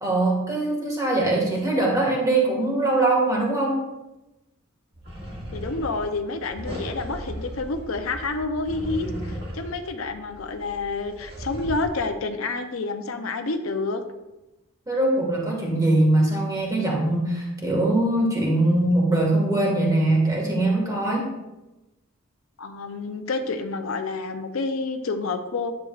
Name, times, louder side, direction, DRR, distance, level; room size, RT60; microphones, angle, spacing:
voice 1, 0.0-3.8 14.9-21.3, right 2 dB, 15° right, -1 dB, 1.7 m, -22 dB
sound 1, 4.9-11.9, equal, 50° right, 2.1 m, -36 dB
voice 2, 5.5-14.0 22.6-25.7, left 3 dB, 75° left, 7 dB, 0.6 m, -29 dB
9.9 x 7.5 x 2.4 m, 1.0 s
head